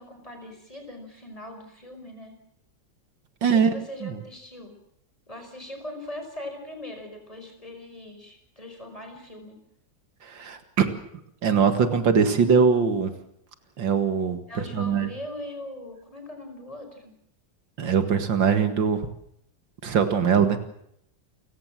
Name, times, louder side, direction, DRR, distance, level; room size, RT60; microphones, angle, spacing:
voice 1, 0.0-2.4 3.4-4.7 5.3-9.6 14.5-17.1, left 1 dB, 20° left, 5 dB, 5.4 m, -40 dB
voice 2, 3.4-3.7 4.0-4.2 10.2-10.9 11.4-13.1 13.8-14.4 14.7-15.1 17.8-19.0 19.8-20.6, right 6 dB, 80° right, 9 dB, 2.6 m, -21 dB
29.5 x 16.5 x 7.6 m, 0.74 s
omnidirectional pair, 2.0 m